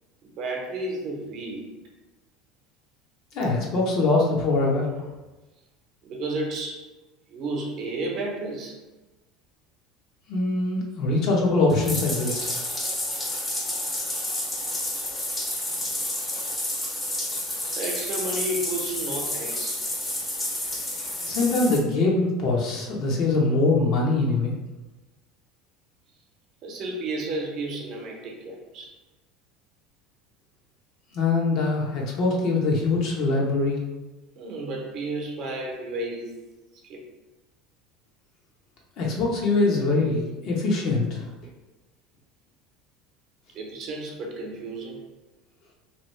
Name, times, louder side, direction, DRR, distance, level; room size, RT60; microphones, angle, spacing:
voice 1, 0.2-1.8 6.0-6.8 7.3-8.8 17.8-19.8 26.6-28.9 34.3-36.4 36.7-37.0 43.5-45.0, right 2 dB, 50° right, 0 dB, 0.8 m, -32 dB
voice 2, 3.3-4.9 10.3-12.6 21.2-24.5 31.1-33.8 39.0-41.2, left 3 dB, 55° left, -2 dB, 0.9 m, -23 dB
Bathtub (filling or washing), 11.7-21.8, left 1 dB, 15° left, 0.7 m, -30 dB
2.9 x 2.6 x 3.1 m, 1.1 s
supercardioid pair, 120°, 0 cm